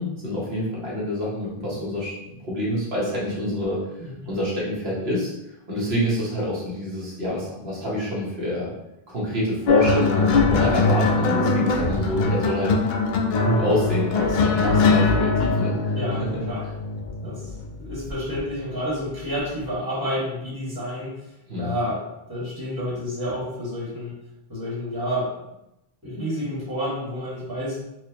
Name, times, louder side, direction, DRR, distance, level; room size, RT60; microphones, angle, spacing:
voice 1, 0.0-3.8 4.2-8.7 9.1-12.8 13.4-15.9 21.5-21.8, equal, 75° right, -6 dB, 1.4 m, -27 dB
voice 2, 4.0-4.4 15.9-16.6 17.2-17.5 17.8-24.2 24.5-25.3 26.0-27.8, equal, 20° right, -7 dB, 1.4 m, -30 dB
sound 1, 9.7-18.4 19.4-19.6, left 3 dB, 60° left, 0.6 m, -22 dB
4.3 x 2.5 x 2.8 m, 0.88 s
omnidirectional pair, 1.1 m